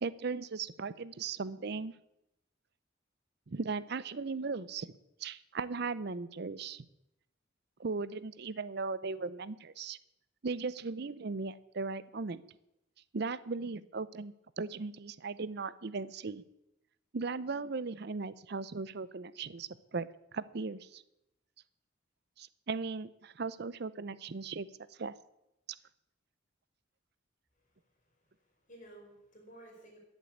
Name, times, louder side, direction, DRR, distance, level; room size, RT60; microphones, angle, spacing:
voice 1, 0.0-1.9 3.5-4.9 5.2-6.8 7.8-10.0 10.4-12.4 13.1-16.4 17.1-20.1 20.3-21.0 22.4-24.7 25.0-25.1, right 4 dB, 55° right, 17 dB, 0.6 m, -37 dB
voice 2, 28.2-30.0, right 1 dB, 40° left, 0 dB, 5.1 m, -55 dB
13.5 x 7.5 x 8.4 m, 0.87 s
head